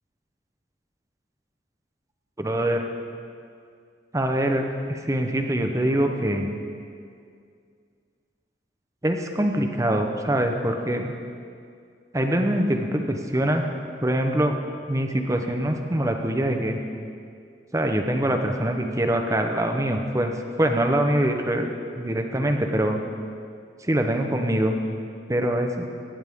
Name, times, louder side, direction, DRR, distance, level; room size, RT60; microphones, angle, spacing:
voice 1, 2.4-2.8 4.1-6.5 9.0-11.1 12.1-13.6 14.0-14.5 14.9-16.8 17.7-20.3 20.6-23.0 23.8-24.8 25.3-25.8, right 1 dB, 20° right, 4 dB, 0.8 m, -24 dB
17.5 x 9.2 x 3.6 m, 2.3 s
head